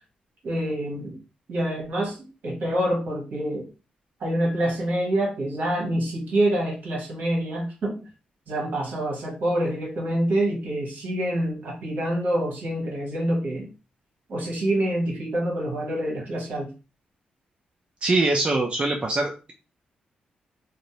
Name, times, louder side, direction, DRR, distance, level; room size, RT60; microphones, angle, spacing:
voice 1, 0.4-1.2 1.5-3.7 4.2-8.0 8.5-13.7 14.3-16.7, right 1 dB, 65° right, -1 dB, 1.1 m, -26 dB
voice 2, 18.0-19.5, right 2 dB, 35° right, 2 dB, 0.4 m, -23 dB
2.6 x 2.0 x 2.8 m, 0.32 s
cardioid pair, 75°, 3 cm